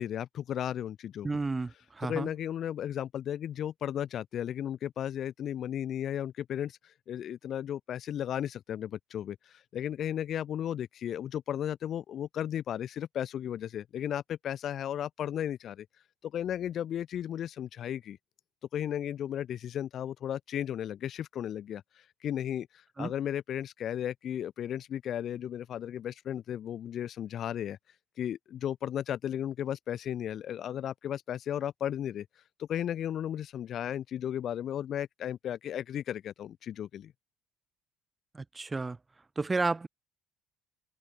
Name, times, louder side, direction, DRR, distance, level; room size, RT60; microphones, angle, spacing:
voice 1, 0.0-1.3 2.0-15.9 16.2-18.2 18.7-27.8 28.2-37.1, left 10 dB, 55° left, 0.6 m, -35 dB
voice 2, 1.2-2.3 23.0-23.1 38.3-39.0 39.4-39.9, right 3 dB, 20° right, 1.2 m, -32 dB
open air
supercardioid pair, 80°, 0 cm